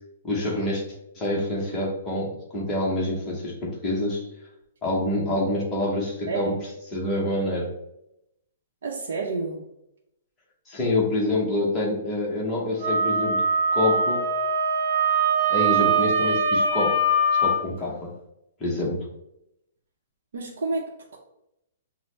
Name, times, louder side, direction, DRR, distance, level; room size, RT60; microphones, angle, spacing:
voice 1, 0.2-0.8 1.2-4.2 4.8-6.5 6.9-7.7 10.7-13.4 13.7-14.2 15.5-16.9 17.4-18.1 18.6-19.0, left 1 dB, 10° left, -4 dB, 0.8 m, -26 dB
voice 2, 8.8-9.7 15.6-15.7 20.3-21.2, right 3 dB, 80° right, -2 dB, 0.7 m, -30 dB
Wind instrument woodwind instrument, 12.8-17.6, right 2 dB, 35° right, 1.1 m, -22 dB
6.0 x 2.0 x 3.2 m, 0.84 s
hypercardioid pair, 175°, 0 cm